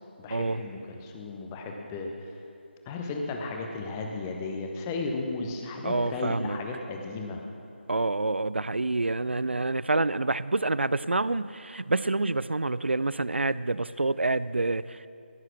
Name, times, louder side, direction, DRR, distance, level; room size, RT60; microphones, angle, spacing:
voice 1, 0.2-2.4 2.9-7.4, left 3 dB, 15° left, 2 dB, 0.9 m, -34 dB
voice 2, 5.8-6.6 7.9-15.0, right 2 dB, 75° right, 17 dB, 0.4 m, -27 dB
15.0 x 7.9 x 6.2 m, 2.6 s
figure-of-eight pair, 155°, 6 cm